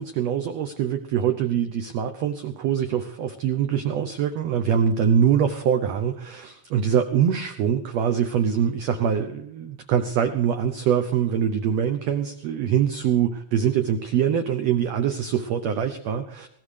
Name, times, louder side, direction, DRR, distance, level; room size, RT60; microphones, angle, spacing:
voice 1, 0.0-16.5, right 8 dB, 90° right, 8 dB, 1.4 m, -24 dB
18.5 x 17.0 x 3.3 m, 0.69 s
omnidirectional pair, 3.9 m